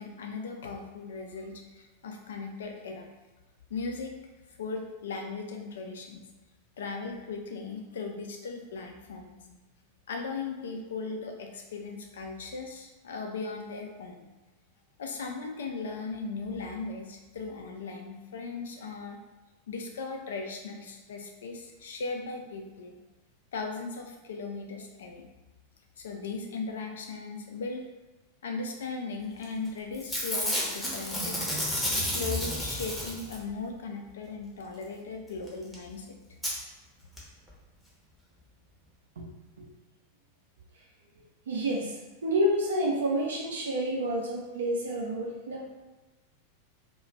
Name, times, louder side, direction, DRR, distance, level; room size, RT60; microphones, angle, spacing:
voice 1, 0.0-3.1 3.7-4.1 4.5-6.2 6.8-9.6 10.1-14.3 15.0-19.2 19.7-23.0 23.5-25.3 26.0-27.8 28.4-31.5 32.0-36.2, left 4 dB, 60° left, 3 dB, 0.4 m, -38 dB
Packing tape duct tape / Tearing, 29.4-29.7 29.9-33.5 35.5-35.6 35.7-35.8 36.4-36.5 37.2-37.3 37.5-37.6, left 1 dB, 10° left, 0.8 m, -31 dB
voice 2, 41.5-45.7, equal, 65° right, -1 dB, 0.6 m, -29 dB
2.3 x 2.2 x 3.2 m, 1.1 s
figure-of-eight pair, 90°, 0 cm